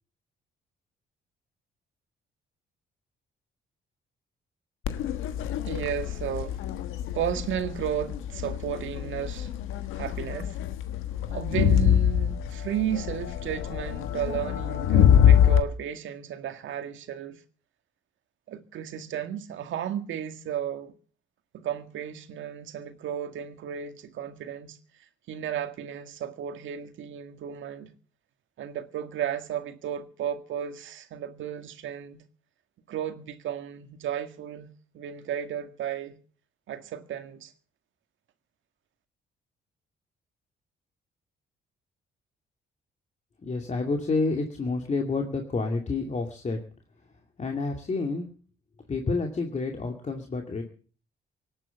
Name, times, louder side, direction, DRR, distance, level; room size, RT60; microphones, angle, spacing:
Crowd, 4.9-15.6, left 9 dB, 90° left, 1.4 m, -25 dB
voice 1, 5.7-6.6 7.1-9.5 10.0-10.6 11.3-17.4 18.5-20.9 21.5-27.9 28.6-32.2 32.9-34.7 34.9-36.2 36.7-37.5, right 9 dB, 75° right, 1.9 m, -34 dB
voice 2, 43.4-46.6 47.4-48.3 48.9-50.6, left 3 dB, 35° left, 2.5 m, -29 dB
18.0 x 9.4 x 7.2 m
cardioid pair, 90°, 20 cm